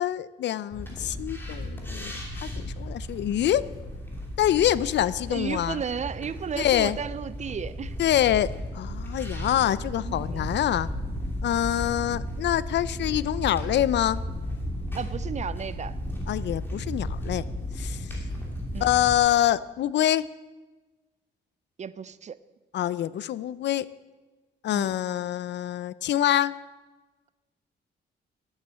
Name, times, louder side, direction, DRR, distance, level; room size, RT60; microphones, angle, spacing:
voice 1, 0.0-2.2 2.6-3.6 4.4-5.8 6.6-7.0 8.0-10.9 11.4-14.2 16.3-17.5 17.8-18.1 18.8-20.2 22.7-23.9 24.6-26.5, left 12 dB, 70° left, 0.5 m, -25 dB
sound 1, 0.7-19.2, equal, 10° left, 2.8 m, -34 dB
voice 2, 5.3-8.0 10.0-10.5 15.0-16.0 18.7-18.9 21.8-22.4 24.7-24.9, right 7 dB, 40° right, 0.5 m, -34 dB
10.5 x 8.7 x 7.4 m
cardioid pair, 105°, 19 cm